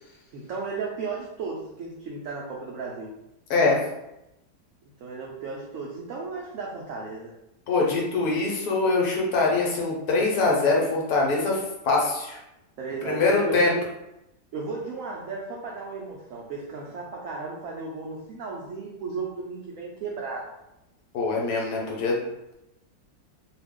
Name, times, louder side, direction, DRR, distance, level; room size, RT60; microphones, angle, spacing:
voice 1, 0.3-3.1 5.0-7.3 12.8-13.8 14.5-20.4, right 4 dB, 80° right, -3 dB, 0.7 m, -35 dB
voice 2, 7.7-12.4 13.0-13.7 21.1-22.2, left 3 dB, 65° left, -2 dB, 1.1 m, -23 dB
2.7 x 2.3 x 3.4 m, 0.89 s
omnidirectional pair, 1.9 m